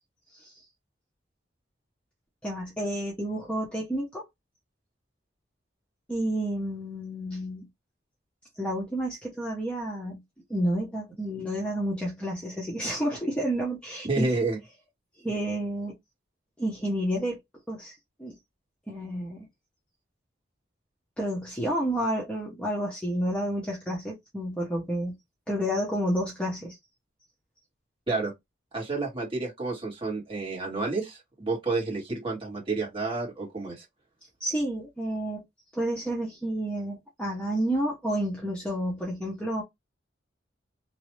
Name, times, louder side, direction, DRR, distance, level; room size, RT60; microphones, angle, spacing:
voice 1, 2.4-4.3 6.1-7.7 8.6-10.2 10.5-14.3 15.2-15.9 16.6-17.4 17.7-18.3 18.9-19.5 21.2-25.2 25.5-26.8 34.4-35.4 35.7-39.6, right 1 dB, 5° left, 0.8 m, -30 dB
voice 2, 14.0-14.6 28.1-28.3 28.7-33.8, right 3 dB, 30° right, 1.9 m, -30 dB
3.0 x 2.6 x 3.1 m
head